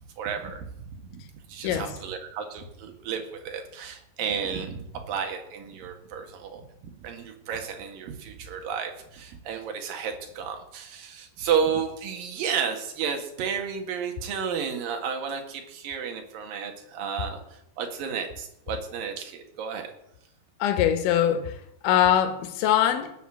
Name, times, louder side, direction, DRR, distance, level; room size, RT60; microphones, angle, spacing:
voice 1, 0.2-19.9, right 7 dB, 60° right, 3.2 m, -32 dB
voice 2, 20.6-21.6 21.8-23.1, left 10 dB, 80° left, 3.6 m, -22 dB
18.5 x 6.8 x 7.7 m
omnidirectional pair, 5.2 m